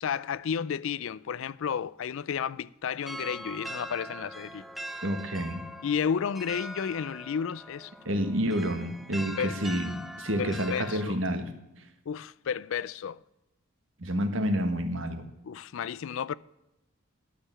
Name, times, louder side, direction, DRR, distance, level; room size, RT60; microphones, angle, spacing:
voice 1, 0.0-4.7 5.8-7.9 9.4-9.6 10.4-11.2 12.1-13.2 15.4-16.3, left 7 dB, 65° left, 0.4 m, -32 dB
sound 1, 3.0-11.1, equal, ahead, 0.5 m, -42 dB
voice 2, 5.0-5.6 8.0-11.5 14.0-15.3, equal, 60° right, 1.5 m, -29 dB
11.5 x 6.7 x 8.7 m
head